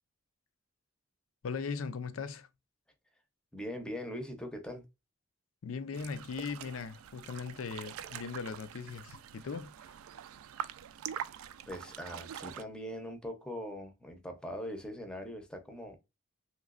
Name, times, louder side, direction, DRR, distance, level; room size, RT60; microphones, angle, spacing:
voice 1, 1.4-2.5 5.6-9.9, left 5 dB, 75° left, 0.4 m, -39 dB
voice 2, 3.5-4.8 11.7-16.0, equal, 5° left, 0.6 m, -41 dB
sound 1, 5.9-12.6, right 9 dB, 85° right, 0.3 m, -44 dB
3.2 x 3.0 x 2.3 m
head